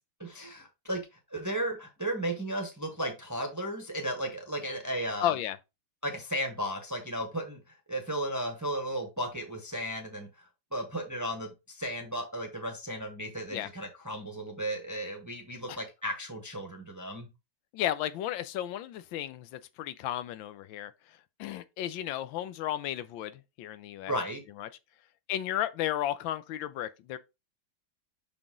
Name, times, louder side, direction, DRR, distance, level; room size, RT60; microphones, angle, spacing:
voice 1, 0.2-1.0 1.3-5.3 6.0-7.6 7.9-10.3 10.7-17.3 24.1-24.4, right 1 dB, 15° right, 0.7 m, -34 dB
voice 2, 5.2-5.6 13.5-13.7 15.7-15.8 17.7-20.9 21.4-24.1 24.6-24.7 25.3-27.2, left 12 dB, 80° left, 1.3 m, -33 dB
5.9 x 5.0 x 3.7 m
omnidirectional pair, 2.1 m